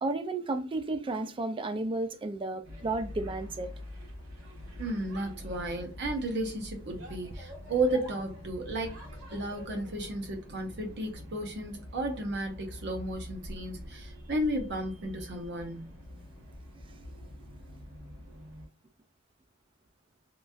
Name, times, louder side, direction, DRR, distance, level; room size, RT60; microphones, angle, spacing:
voice 1, 0.0-3.7, right 2 dB, 25° right, 0.3 m, -32 dB
sound 1, 2.6-18.7, left 1 dB, 80° right, 1.3 m, -45 dB
voice 2, 4.8-9.0 9.3-15.9, right 1 dB, 55° right, 0.7 m, -33 dB
3.0 x 2.4 x 2.5 m
head